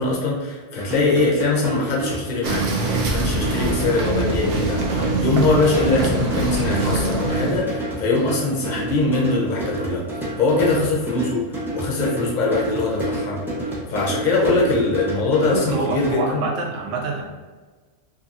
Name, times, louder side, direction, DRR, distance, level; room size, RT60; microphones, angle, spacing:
voice 1, 0.0-10.0 10.4-13.4 13.9-16.4, left 3 dB, 50° left, -2 dB, 0.6 m, -22 dB
sound 1, 0.8-16.1, right 1 dB, ahead, 0.5 m, -29 dB
sound 2, 2.4-7.6, right 2 dB, 65° right, 0.7 m, -24 dB
voice 2, 15.5-17.3, right 3 dB, 85° right, 1 dB, 0.9 m, -26 dB
2.7 x 2.5 x 2.4 m, 1.3 s
omnidirectional pair, 1.2 m